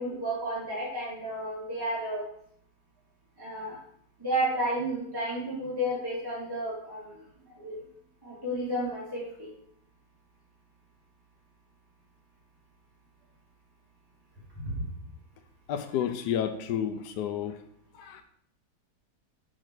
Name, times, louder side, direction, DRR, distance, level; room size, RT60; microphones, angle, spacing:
voice 1, 0.0-2.2 3.4-3.8 4.2-7.1 7.6-7.8 8.2-9.5 14.6-14.8, right 1 dB, 15° right, -9 dB, 2.4 m, -32 dB
voice 2, 15.7-17.6 17.9-18.2, left 9 dB, 75° left, 7 dB, 1.1 m, -31 dB
6.3 x 4.3 x 6.1 m, 0.69 s
omnidirectional pair, 1.8 m